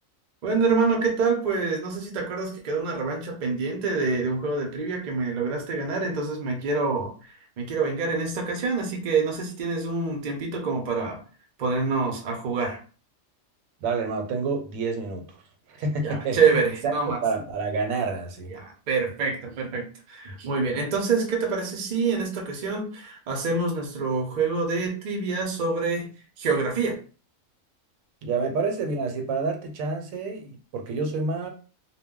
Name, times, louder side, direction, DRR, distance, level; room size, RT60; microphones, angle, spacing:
voice 1, 0.4-11.2 11.6-12.8 16.0-17.2 18.5-26.1 26.4-27.0, right 4 dB, 50° right, 0.6 m, -26 dB
voice 2, 13.8-15.4 15.7-16.9 17.2-18.5 28.2-31.5, right 4 dB, 80° right, 1.0 m, -28 dB
2.2 x 2.1 x 3.6 m
omnidirectional pair, 1.4 m